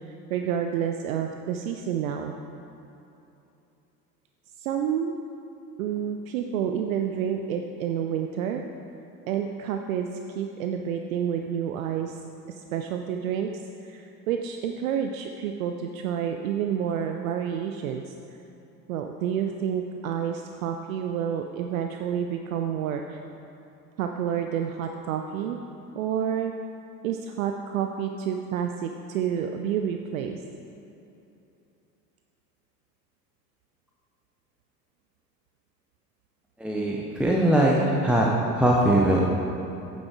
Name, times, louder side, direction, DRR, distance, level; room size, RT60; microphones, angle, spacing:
voice 1, 0.1-2.3 4.6-5.2 5.8-8.6 9.3-12.1 12.5-13.5 13.8-18.1 18.9-23.2 24.0-25.6 25.9-26.5 27.0-30.4, right 8 dB, 55° right, 5 dB, 0.6 m, -29 dB
voice 2, 36.6-38.3 38.6-39.2, right 1 dB, ahead, -3 dB, 0.5 m, -21 dB
8.8 x 7.3 x 4.6 m, 2.9 s
figure-of-eight pair, 80°, 50 cm